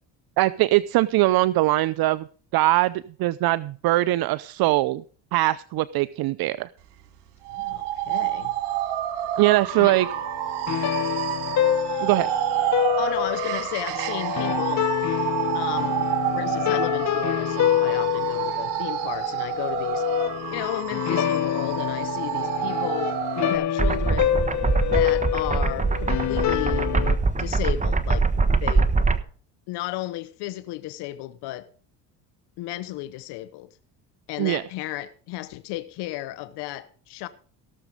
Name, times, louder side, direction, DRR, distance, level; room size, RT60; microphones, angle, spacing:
voice 1, 0.4-2.3 2.5-5.0 5.3-6.7 9.4-10.1 12.0-12.3 34.4-34.6, right 17 dB, 65° right, 0.6 m, -21 dB
sound 1, 7.4-23.6, right 11 dB, 85° right, 2.2 m, -29 dB
voice 2, 7.5-8.5 9.8-10.0 13.0-15.2 15.5-16.1 16.3-20.2 20.5-24.4 24.8-26.9 27.4-28.3 28.6-28.9 29.7-31.7 32.6-33.7 34.3-37.3, left 16 dB, 80° left, 0.9 m, -34 dB
sound 2, 9.7-27.2, left 11 dB, 45° left, 0.8 m, -27 dB
sound 3, 23.8-29.2, right 3 dB, 20° right, 1.2 m, -23 dB
17.0 x 7.2 x 5.1 m
cardioid pair, 90°, 40 cm